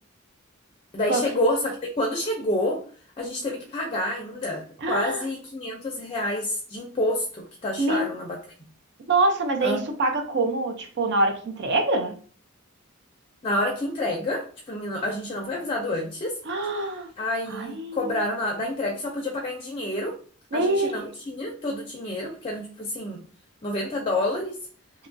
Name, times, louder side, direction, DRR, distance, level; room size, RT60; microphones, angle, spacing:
voice 1, 0.9-2.8 3.2-8.4 9.6-9.8 13.4-16.4 17.2-20.2 20.5-23.2 23.6-24.6, left 1 dB, 25° left, 1 dB, 0.4 m, -28 dB
voice 2, 4.8-5.2 7.8-8.1 9.1-12.2 16.5-17.1 17.5-18.1 20.5-21.0, right 2 dB, 55° right, 5 dB, 0.5 m, -25 dB
2.9 x 2.3 x 2.5 m, 0.43 s
head